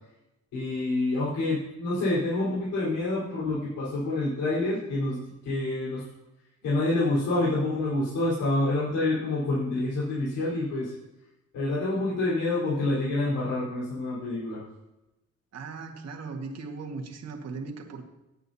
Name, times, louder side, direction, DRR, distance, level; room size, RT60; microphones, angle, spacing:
voice 1, 0.5-6.0 6.6-10.9 11.5-14.7, left 2 dB, 80° left, -7 dB, 4.5 m, -27 dB
voice 2, 15.5-18.0, right 4 dB, 60° right, 2 dB, 1.8 m, -38 dB
18.0 x 8.9 x 2.8 m, 0.96 s
cardioid pair, 90°, 30 cm